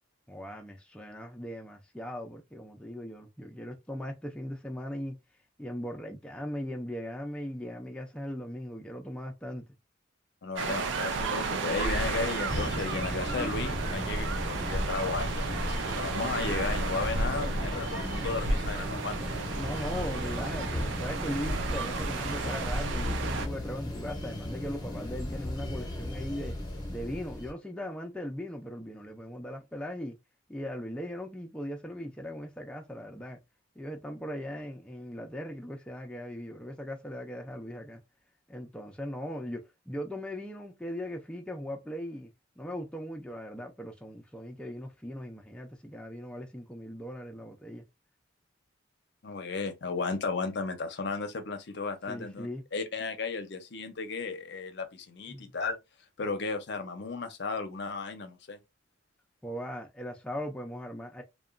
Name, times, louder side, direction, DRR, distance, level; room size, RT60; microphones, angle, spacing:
voice 1, 0.3-5.2 5.6-9.7 19.5-26.6 26.9-30.2 30.5-33.4 33.8-38.0 38.5-42.3 42.6-47.8 52.1-52.6 55.3-55.5 59.4-61.2, equal, 5° left, 0.3 m, -39 dB
voice 2, 10.4-19.2 49.2-55.8 56.2-58.6, left 4 dB, 60° left, 0.6 m, -34 dB
sound 1, 10.6-23.5, right 3 dB, 75° right, 0.5 m, -32 dB
sound 2, 12.5-27.5, left 1 dB, 20° left, 0.7 m, -36 dB
2.8 x 2.1 x 2.4 m
head